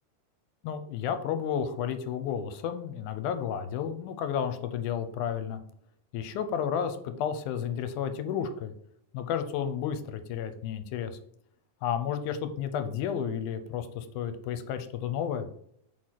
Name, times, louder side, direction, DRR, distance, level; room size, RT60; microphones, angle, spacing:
voice 1, 0.6-5.6 6.1-8.7 9.1-11.2 11.8-15.5, left 8 dB, 80° left, 9 dB, 2.0 m, -32 dB
4.7 x 4.6 x 5.8 m, 0.69 s
omnidirectional pair, 3.7 m